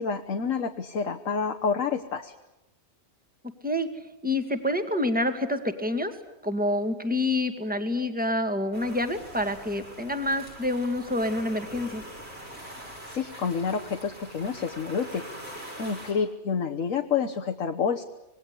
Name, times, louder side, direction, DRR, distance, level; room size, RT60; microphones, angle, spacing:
voice 1, 0.0-2.3 13.1-15.3 15.8-18.0, left 6 dB, 80° left, 3 dB, 1.6 m, -28 dB
voice 2, 4.2-6.1 6.4-12.0, left 1 dB, 5° right, 7 dB, 2.1 m, -27 dB
sound 1, 8.7-16.1, right 1 dB, 50° right, 7.1 m, -43 dB
26.0 x 20.5 x 9.7 m, 0.94 s
omnidirectional pair, 1.4 m